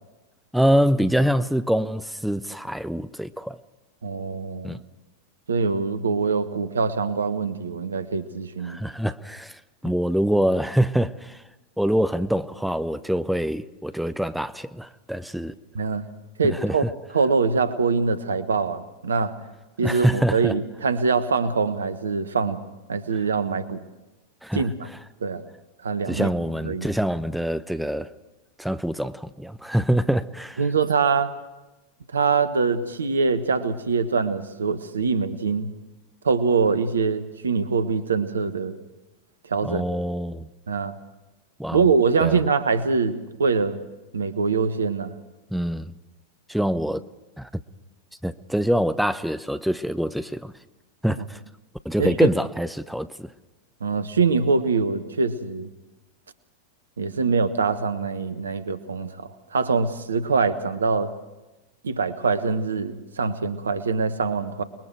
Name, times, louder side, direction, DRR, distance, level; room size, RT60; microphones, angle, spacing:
voice 1, 0.5-3.6 4.6-4.8 8.6-11.4 11.8-15.5 16.4-16.9 19.8-20.6 24.4-24.6 26.1-28.1 28.6-30.6 39.6-40.5 41.6-41.9 42.2-42.4 45.5-45.9 46.5-47.0 47.4-47.5 48.2-50.5 51.0-51.4 51.8-53.3, equal, ahead, 0.8 m, -25 dB
voice 2, 4.0-4.8 5.5-8.8 15.7-16.0 16.4-16.8 17.1-19.3 19.8-22.6 22.9-23.8 24.5-24.7 25.2-25.4 25.8-26.3 26.6-26.9 30.6-31.3 32.1-35.7 36.2-38.8 39.5-39.8 40.7-40.9 41.7-43.8 44.1-45.1 52.0-52.3 53.8-55.7 57.0-61.1 61.8-64.6, right 5 dB, 70° right, 1.3 m, -24 dB
29.5 x 21.5 x 4.6 m
figure-of-eight pair, 90°, 0 cm